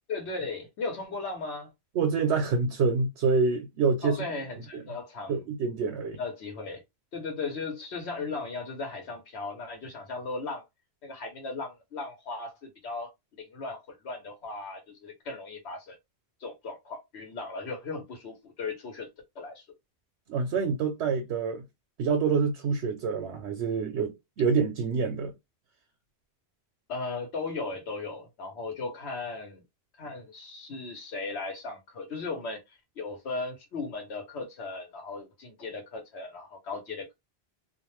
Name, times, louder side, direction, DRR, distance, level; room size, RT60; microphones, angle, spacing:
voice 1, 0.1-1.7 4.0-5.4 6.2-6.8 7.1-10.6 11.0-13.1 13.4-16.0 16.4-19.1 19.3-19.6 26.9-29.6 30.0-32.6 33.0-37.1, left 3 dB, 85° left, 1.1 m, -37 dB
voice 2, 1.9-4.2 4.7-4.8 5.3-6.2 20.3-21.6 22.0-25.3, right 5 dB, 85° right, 0.9 m, -26 dB
2.4 x 2.1 x 3.0 m
omnidirectional pair, 1.1 m